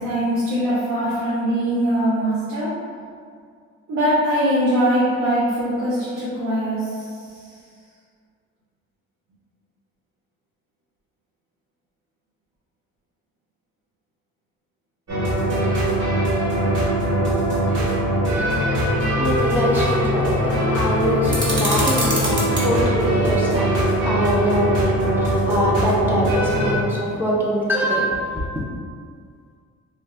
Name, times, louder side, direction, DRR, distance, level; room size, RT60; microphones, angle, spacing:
voice 1, 0.0-2.7 3.9-7.5, equal, 85° right, -9 dB, 0.7 m, -22 dB
sound 1, 15.1-26.7, equal, 55° right, 1.3 m, -21 dB
voice 2, 19.2-28.6, equal, 5° right, -5 dB, 0.4 m, -23 dB
sound 2, 21.3-22.7, right 1 dB, 40° right, 0.9 m, -25 dB
2.6 x 2.2 x 3.2 m, 2.1 s
cardioid pair, 90°, 30 cm